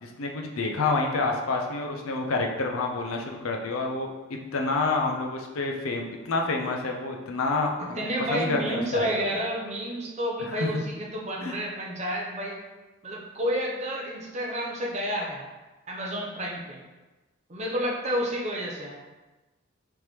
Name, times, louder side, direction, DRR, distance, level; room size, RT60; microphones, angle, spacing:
voice 1, 0.0-4.1 4.5-8.0 8.3-9.1 10.5-10.8 11.4-11.6, left 3 dB, 85° left, 2 dB, 0.6 m, -28 dB
voice 2, 8.0-12.6 13.0-15.4 15.9-16.8 17.5-19.0, equal, 30° right, -2 dB, 0.7 m, -30 dB
4.3 x 3.6 x 3.1 m, 1.2 s
head